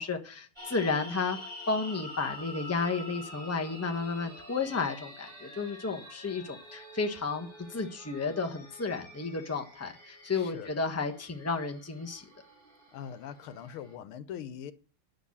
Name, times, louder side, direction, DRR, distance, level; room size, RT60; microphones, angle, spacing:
voice 1, 0.0-1.4 1.7-12.2, left 4 dB, 10° left, 0.8 m, -32 dB
sound 1, 0.6-13.9, left 1 dB, 10° right, 4.5 m, -47 dB
voice 2, 10.3-10.7 12.9-14.7, left 9 dB, 85° left, 1.8 m, -42 dB
10.0 x 6.6 x 8.5 m
omnidirectional pair, 2.3 m